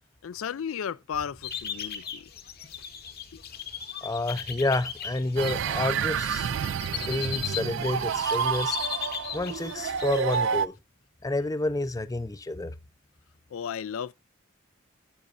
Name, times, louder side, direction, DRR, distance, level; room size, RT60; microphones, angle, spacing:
voice 1, 0.2-2.3 3.3-3.4 13.5-14.1, left 7 dB, 75° left, 0.4 m, -34 dB
sound 1, 1.1-10.0, equal, 85° right, 3.1 m, -53 dB
sound 2, 1.4-10.4, left 9 dB, 45° left, 1.0 m, -38 dB
voice 2, 4.0-6.5 7.0-8.8 9.3-10.8 11.2-12.7, left 2 dB, 15° left, 0.5 m, -29 dB
sound 3, 5.4-10.7, right 7 dB, 60° right, 0.3 m, -29 dB
10.0 x 8.3 x 2.5 m
head